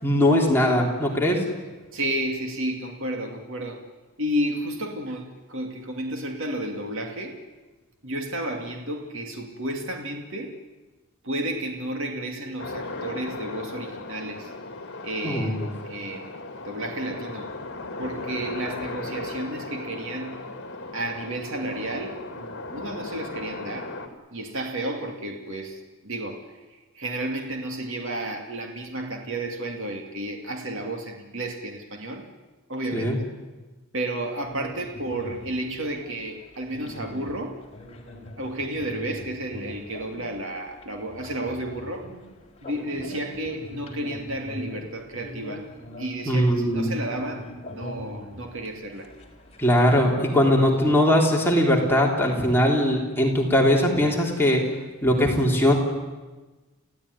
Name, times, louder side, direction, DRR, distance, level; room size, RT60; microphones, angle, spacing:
voice 1, 0.0-1.4 15.2-15.7 32.9-33.2 46.3-46.9 49.6-54.6 55.0-55.7, left 1 dB, 10° left, -1 dB, 3.6 m, -20 dB
voice 2, 1.9-3.8 4.2-7.4 8.0-10.5 11.2-14.5 15.0-15.5 15.8-16.3 16.6-17.5 18.0-20.4 20.9-23.9 24.3-26.4 26.7-32.3 32.7-33.3 33.9-37.6 38.4-42.0 42.6-45.7 46.0-49.1, right 1 dB, 60° right, 3 dB, 2.5 m, -32 dB
sound 1, 12.6-24.1, left 2 dB, 50° left, 2.4 m, -37 dB
sound 2, 34.4-49.7, left 1 dB, 30° left, 3.9 m, -42 dB
29.5 x 16.0 x 9.8 m, 1.2 s
head